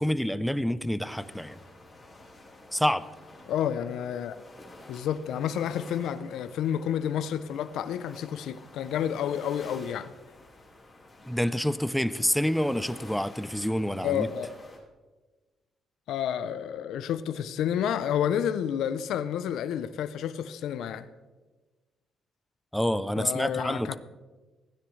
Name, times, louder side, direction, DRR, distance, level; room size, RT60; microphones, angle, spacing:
voice 1, 0.0-1.6 2.7-3.1 11.3-14.3 22.7-24.0, equal, ahead, 0.5 m, -27 dB
sound 1, 1.1-14.8, left 2 dB, 20° left, 4.0 m, -50 dB
voice 2, 3.5-4.4 4.9-10.1 14.0-14.5 16.1-21.1 23.2-24.0, left 9 dB, 80° left, 0.5 m, -30 dB
16.0 x 9.9 x 3.2 m
cardioid pair, 90°, 0 cm